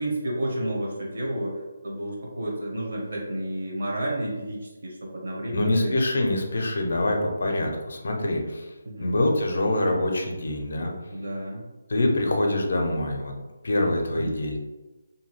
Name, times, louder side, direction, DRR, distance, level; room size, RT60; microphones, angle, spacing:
voice 1, 0.0-6.0 8.8-9.2 11.1-11.6 14.1-14.4, right 1 dB, 50° right, -3 dB, 0.9 m, -31 dB
voice 2, 5.5-8.7 9.0-10.9 11.9-13.3 13.6-14.6, left 1 dB, 50° left, 2 dB, 0.5 m, -25 dB
2.6 x 2.3 x 3.0 m, 1.1 s
hypercardioid pair, 180°, 0 cm